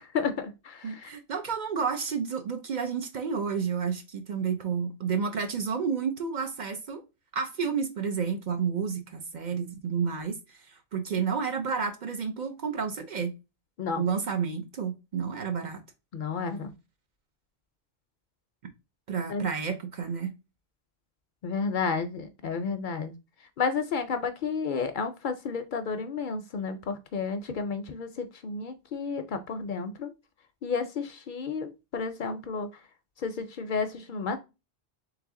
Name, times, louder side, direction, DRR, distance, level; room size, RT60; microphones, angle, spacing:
voice 1, 0.0-1.1 13.8-14.0 16.1-16.7 19.3-19.5 21.4-23.1 23.6-30.1 30.6-32.8 33.2-34.4, left 5 dB, 60° left, 0.6 m, -31 dB
voice 2, 0.8-7.0 7.3-13.4 14.0-15.8 19.1-20.3, right 6 dB, 55° right, 0.6 m, -30 dB
3.4 x 3.3 x 3.6 m
omnidirectional pair, 1.0 m